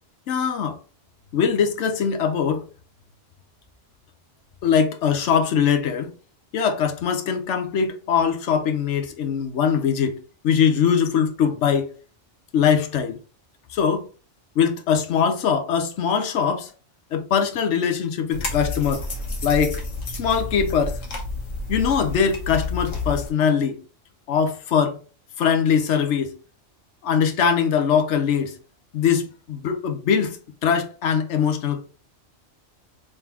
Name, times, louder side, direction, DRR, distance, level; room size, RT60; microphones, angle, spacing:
voice 1, 0.3-0.8 1.3-2.7 4.6-6.1 6.5-12.0 12.5-13.2 13.7-14.1 14.6-16.7 17.1-19.1 19.4-19.8 20.1-21.0 21.7-23.8 24.3-25.0 25.4-26.4 27.0-28.6 28.9-30.4 30.6-31.8, left 7 dB, 75° left, 1.0 m, -22 dB
sound 1, 18.3-23.3, left 3 dB, 90° left, 1.5 m, -30 dB
3.6 x 3.3 x 2.9 m
omnidirectional pair, 1.3 m